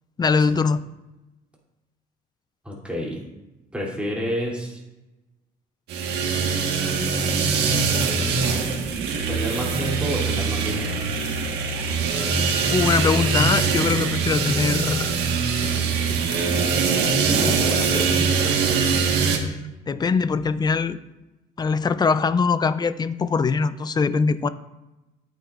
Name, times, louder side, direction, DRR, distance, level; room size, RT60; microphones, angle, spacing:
voice 1, 0.2-0.8 12.1-15.2 17.3-18.5 19.4-19.5 19.9-21.0 21.6-24.5, left 5 dB, 25° left, 14 dB, 0.4 m, -23 dB
voice 2, 2.6-3.2 3.7-4.8 7.5-8.4 9.3-11.0, equal, 5° right, -4 dB, 2.8 m, -29 dB
sound 1, 5.9-19.4, right 5 dB, 85° right, 1.4 m, -23 dB
13.5 x 8.9 x 2.4 m, 1.0 s
cardioid pair, 110°, 17 cm